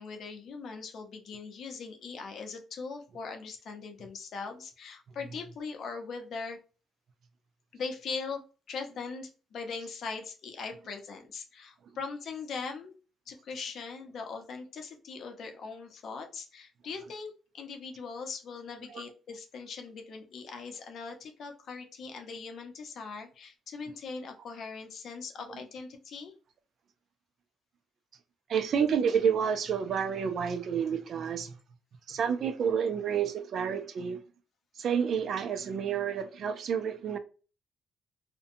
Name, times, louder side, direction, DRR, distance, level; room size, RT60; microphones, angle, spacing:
voice 1, 0.0-6.6 7.7-8.4 8.7-12.9 13.3-26.3, left 4 dB, 65° left, 0.6 m, -40 dB
voice 2, 28.5-31.6 32.1-34.2 34.8-37.2, right 7 dB, 60° right, 0.4 m, -29 dB
2.5 x 2.1 x 2.6 m
cardioid pair, 90°, 0 cm